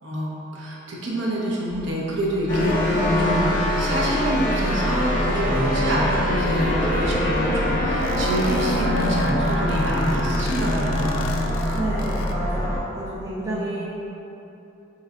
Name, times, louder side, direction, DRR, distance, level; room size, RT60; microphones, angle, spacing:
voice 1, 0.0-11.3 13.4-13.7, equal, 65° right, -4 dB, 0.7 m, -27 dB
sound 1, 1.7-13.2, equal, ahead, 0.8 m, -43 dB
sound 2, 2.5-12.8, left 1 dB, 40° left, 0.6 m, -23 dB
sound 3, 8.0-12.4, left 4 dB, 80° left, 0.3 m, -39 dB
voice 2, 11.7-13.8, right 1 dB, 15° right, -7 dB, 0.4 m, -30 dB
4.6 x 3.1 x 2.4 m, 2.8 s
head